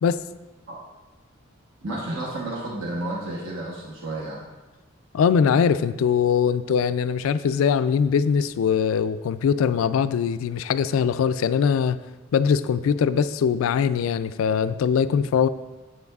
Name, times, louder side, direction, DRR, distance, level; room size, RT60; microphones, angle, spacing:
voice 1, 1.8-4.4, right 1 dB, 70° right, -4 dB, 1.1 m, -31 dB
voice 2, 5.1-12.0 12.3-15.5, left 7 dB, 85° left, 13 dB, 0.3 m, -22 dB
9.4 x 8.1 x 2.3 m, 1.2 s
head